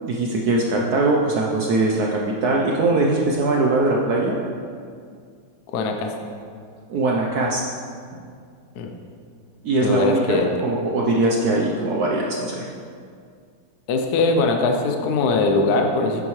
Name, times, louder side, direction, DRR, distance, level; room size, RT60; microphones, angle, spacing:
voice 1, 0.0-4.4 6.9-7.6 9.6-12.7, right 2 dB, 70° right, -2 dB, 0.9 m, -21 dB
voice 2, 5.7-6.1 8.8-8.9 9.8-10.5 13.9-16.2, left 3 dB, 65° left, 3 dB, 1.0 m, -21 dB
9.1 x 7.6 x 3.1 m, 2.2 s
omnidirectional pair, 2.3 m